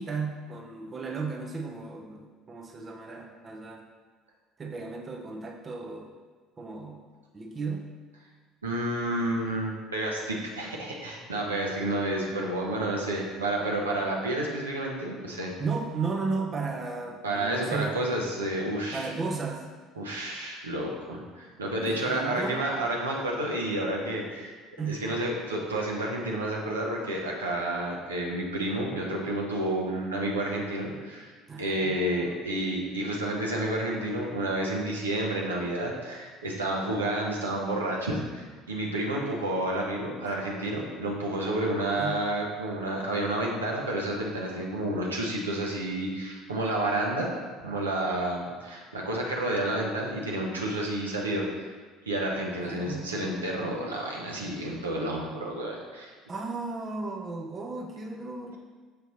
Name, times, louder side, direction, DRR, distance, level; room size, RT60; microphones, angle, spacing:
voice 1, 0.0-3.9 4.6-6.1 6.6-7.1 7.3-7.9 15.6-18.1 18.9-19.7 21.8-22.7 24.8-25.0 31.5-32.0 42.0-42.3 52.7-53.1 56.3-58.6, right 4 dB, 30° right, 2 dB, 0.6 m, -34 dB
voice 2, 8.6-15.5 17.2-19.1 20.0-24.6 24.9-31.3 31.6-47.3 47.6-51.7 52.1-56.1, right 1 dB, 80° right, -2 dB, 1.0 m, -30 dB
6.8 x 4.4 x 4.1 m, 1.4 s
figure-of-eight pair, 60°, 0 cm